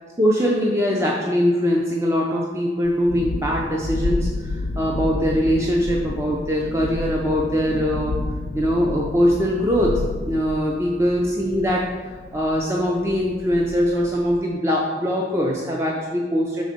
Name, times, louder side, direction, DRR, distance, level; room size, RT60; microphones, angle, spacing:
voice 1, 0.2-8.1 8.5-9.9 10.3-11.8 12.3-16.6, equal, 15° right, -2 dB, 0.4 m, -22 dB
Thunderstorm, 2.8-14.4, left 2 dB, 65° left, 0.4 m, -30 dB
5.8 x 3.9 x 4.9 m, 1.5 s
head